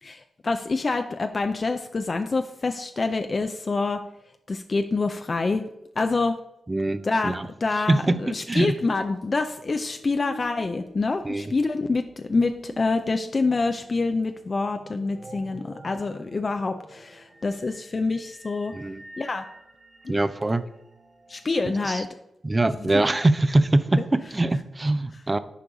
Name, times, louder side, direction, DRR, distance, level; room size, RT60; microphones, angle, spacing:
voice 1, 0.0-4.0 4.5-5.7 6.0-6.3 7.0-7.4 7.6-18.7 19.2-19.4 20.0-20.2 21.3-22.1, left 3 dB, 45° left, 7 dB, 0.5 m, -26 dB
voice 2, 6.7-7.5 7.9-8.2 8.5-8.7 11.2-11.5 18.7-19.0 20.1-20.6 21.8-22.0 22.4-25.4, right 2 dB, 25° right, 13 dB, 0.6 m, -23 dB
sound 1, 6.8-22.1, right 2 dB, 50° right, 1.2 m, -49 dB
8.3 x 4.6 x 3.9 m, 0.84 s
supercardioid pair, 50°, 0 cm